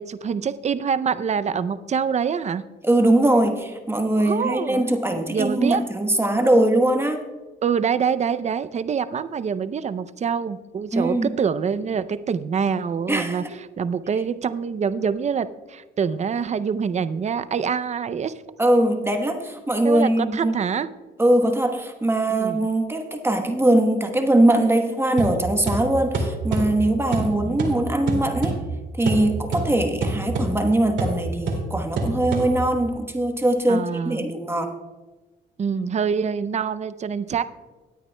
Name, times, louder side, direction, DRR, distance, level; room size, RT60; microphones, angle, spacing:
voice 1, 0.0-2.6 4.2-5.8 7.6-13.4 13.8-18.3 19.8-20.9 22.3-22.6 27.1-27.6 33.7-34.3 35.6-37.4, right 6 dB, 35° right, 14 dB, 0.5 m, -25 dB
voice 2, 2.8-7.2 10.9-11.3 13.1-13.5 18.6-20.5 21.2-28.6 29.0-34.8, right 1 dB, 10° right, 5 dB, 1.1 m, -21 dB
sound 1, 25.2-32.9, right 3 dB, 70° right, 2.3 m, -28 dB
18.0 x 9.2 x 2.2 m, 1.2 s
cardioid pair, 90°, 20 cm